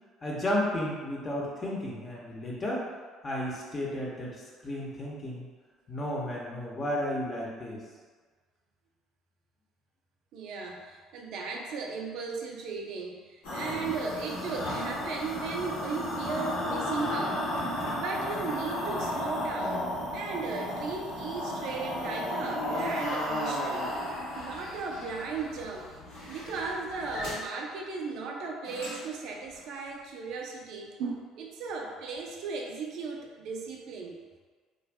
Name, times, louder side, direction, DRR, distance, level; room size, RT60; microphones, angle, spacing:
voice 1, 0.2-2.8 3.2-5.4 5.9-7.8, left 1 dB, 35° left, -4 dB, 0.8 m, -33 dB
voice 2, 10.3-17.4 17.9-19.9 20.1-23.9 24.4-25.9 26.3-34.2, right 4 dB, 65° right, 0 dB, 0.5 m, -36 dB
sound 1, 13.4-27.3 28.6-29.1 29.5-29.6, left 1 dB, 75° left, 1.0 m, -34 dB
2.5 x 2.2 x 3.3 m, 1.5 s
hypercardioid pair, 60°, 0 cm